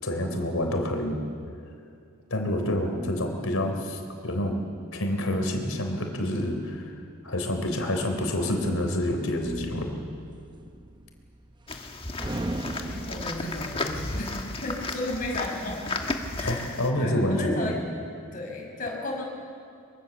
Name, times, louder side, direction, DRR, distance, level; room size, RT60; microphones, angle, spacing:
voice 1, 0.0-1.2 2.3-4.6 4.9-6.9 7.2-9.9 16.4-17.7, left 1 dB, 75° left, 4 dB, 3.8 m, -27 dB
sound 1, 8.4-11.9 12.2-14.9, right 1 dB, 20° right, 0.8 m, -39 dB
sound 2, 11.7-16.9, left 2 dB, 25° left, 1.5 m, -34 dB
voice 2, 12.8-14.3 14.6-15.8 16.3-17.8 18.3-19.2, left 1 dB, 40° left, -1 dB, 6.0 m, -34 dB
24.5 x 23.0 x 7.3 m, 2.4 s
head